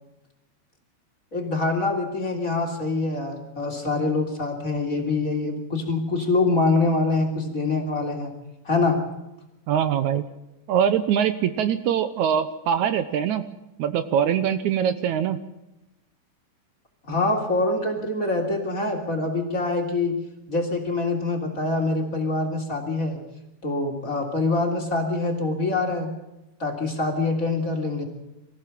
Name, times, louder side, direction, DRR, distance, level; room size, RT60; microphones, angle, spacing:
voice 1, 1.3-8.3 8.6-9.0 17.1-20.1 20.5-23.2 23.6-26.1 26.6-28.0, left 3 dB, 25° left, 1 dB, 3.3 m, -25 dB
voice 2, 9.7-10.2 10.7-13.4 13.8-15.4, right 9 dB, 75° right, 11 dB, 2.1 m, -23 dB
25.0 x 15.5 x 7.5 m, 0.96 s
omnidirectional pair, 3.6 m